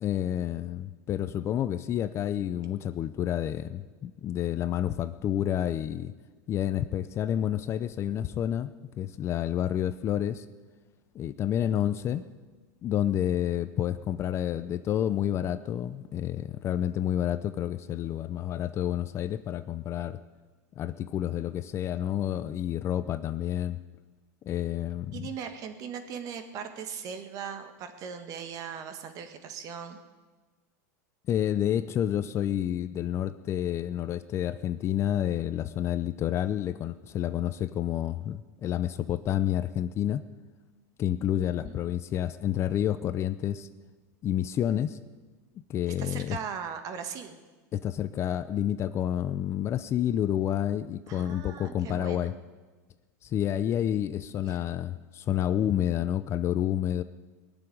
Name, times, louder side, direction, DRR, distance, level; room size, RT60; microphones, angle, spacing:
voice 1, 0.0-6.1 6.5-8.7 9.0-10.4 11.1-12.2 12.8-20.2 20.8-23.8 24.4-25.2 31.3-40.2 41.0-43.7 44.2-45.0 45.7-46.4 47.7-52.3 53.2-57.0, left 11 dB, 30° left, 12 dB, 0.5 m, -29 dB
voice 2, 25.1-30.0 41.6-41.8 45.9-47.4 51.1-52.4 54.4-54.7, right 7 dB, 40° right, 8 dB, 1.7 m, -39 dB
19.5 x 7.1 x 9.9 m, 1.4 s
supercardioid pair, 140°, 9 cm